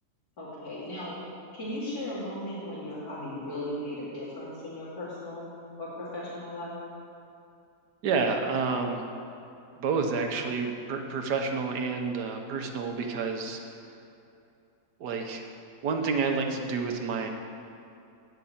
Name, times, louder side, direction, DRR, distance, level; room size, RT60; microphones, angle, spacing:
voice 1, 0.4-1.2 1.5-5.5 5.8-6.7, left 1 dB, 65° left, -10 dB, 3.1 m, -36 dB
voice 2, 8.0-9.1 9.8-13.6 15.0-15.4 15.8-17.3, right 4 dB, 80° right, 4 dB, 1.6 m, -29 dB
9.1 x 6.7 x 8.6 m, 2.7 s
omnidirectional pair, 1.7 m